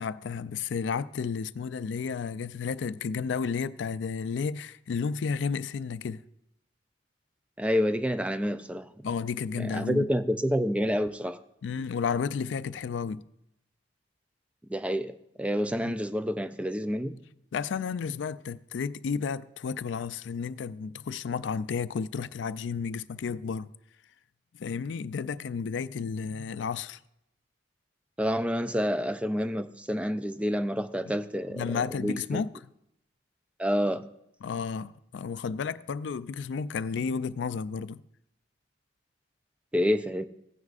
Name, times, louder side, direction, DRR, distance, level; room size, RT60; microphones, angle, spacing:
voice 1, 0.0-6.2 9.0-10.1 11.6-13.2 15.9-16.0 17.5-23.7 24.6-27.0 31.5-32.5 34.4-38.0, left 5 dB, 80° left, 0.4 m, -32 dB
voice 2, 7.6-9.1 9.6-11.4 14.7-15.1 15.4-17.2 28.2-32.4 33.6-34.0 39.7-40.2, equal, 5° right, 0.4 m, -28 dB
15.5 x 9.5 x 2.5 m
head